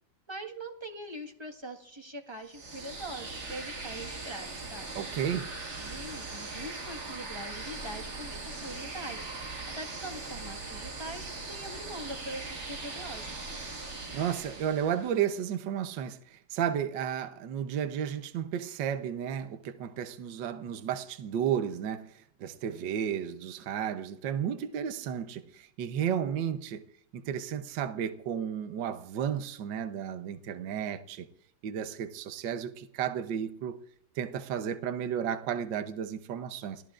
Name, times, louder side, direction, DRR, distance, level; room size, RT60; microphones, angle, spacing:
voice 1, 0.3-4.8 5.8-9.3 9.7-13.4, right 1 dB, 15° right, 1.4 m, -42 dB
sound 1, 2.4-15.2, right 3 dB, 35° right, 1.7 m, -40 dB
voice 2, 5.0-5.5 14.1-22.1 22.4-26.8 27.1-31.3 31.6-33.8 34.2-36.8, right 9 dB, 65° right, 1.5 m, -33 dB
30.0 x 17.5 x 2.5 m
omnidirectional pair, 2.2 m